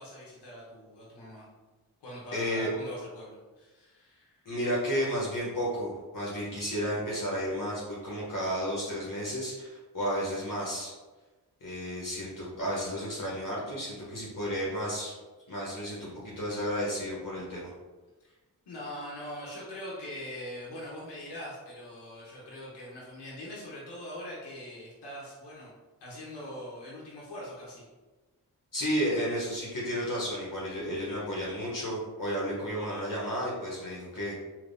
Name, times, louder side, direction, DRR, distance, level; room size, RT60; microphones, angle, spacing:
voice 1, 0.0-1.5 2.0-4.4 18.2-18.4 18.7-25.7 26.0-27.8, equal, 85° left, -5 dB, 0.9 m, -42 dB
voice 2, 2.3-2.7 4.4-10.9 11.6-15.1 15.5-17.7 28.7-34.4, equal, 55° left, -5 dB, 1.0 m, -32 dB
3.3 x 2.8 x 2.6 m, 1.2 s
cardioid pair, 65°, 40 cm